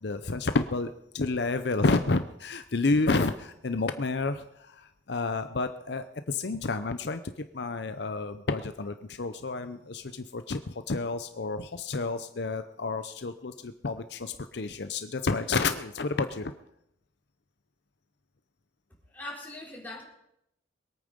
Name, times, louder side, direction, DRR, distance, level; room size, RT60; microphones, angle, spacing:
voice 1, 0.0-7.2 7.5-16.5, left 3 dB, 65° left, 9 dB, 0.7 m, -30 dB
voice 2, 19.1-20.0, left 1 dB, 10° left, -4 dB, 4.0 m, -41 dB
22.0 x 8.9 x 5.3 m, 0.79 s
head